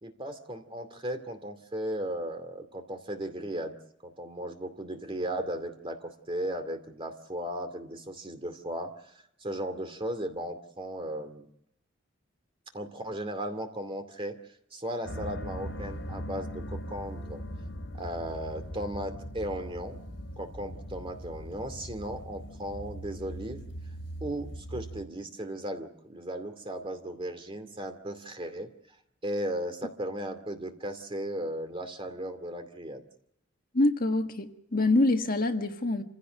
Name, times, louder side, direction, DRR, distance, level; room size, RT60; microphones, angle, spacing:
voice 1, 0.0-3.8 4.0-8.9 9.4-11.5 12.7-14.4 14.7-17.4 18.0-20.0 20.4-23.6 24.2-28.7 29.2-33.0, right 1 dB, 25° right, 7 dB, 2.4 m, -36 dB
sound 1, 15.0-25.0, equal, 65° left, 3.8 m, -40 dB
voice 2, 33.7-36.0, left 2 dB, 45° left, 5 dB, 1.5 m, -25 dB
27.0 x 16.0 x 7.9 m, 0.82 s
head